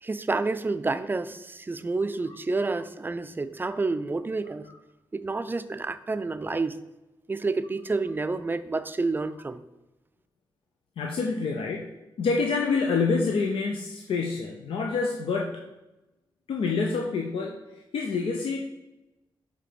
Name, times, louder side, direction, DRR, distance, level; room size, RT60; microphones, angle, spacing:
voice 1, 0.0-4.7 5.1-6.8 7.3-9.6, right 3 dB, 20° right, 13 dB, 0.4 m, -29 dB
voice 2, 11.0-11.9 12.2-15.7 16.5-17.6 17.9-18.6, left 4 dB, 80° left, 0 dB, 0.6 m, -27 dB
5.9 x 3.3 x 5.0 m, 0.99 s
cardioid pair, 70°, 9 cm